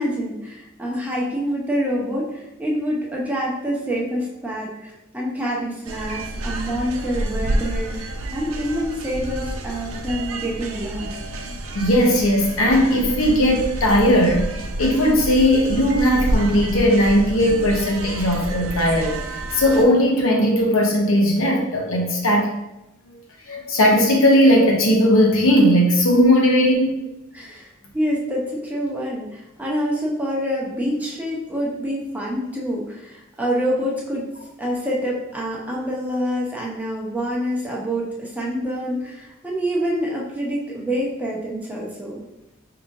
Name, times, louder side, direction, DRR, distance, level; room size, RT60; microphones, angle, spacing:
voice 1, 0.0-11.2 27.3-34.3 34.6-42.2, equal, 10° right, -4 dB, 0.7 m, -26 dB
sound 1, 5.8-19.8, right 1 dB, 90° right, 0.5 m, -29 dB
voice 2, 11.7-22.5 23.5-27.1, equal, 85° left, 0 dB, 0.8 m, -18 dB
4.8 x 2.8 x 2.5 m, 0.90 s
head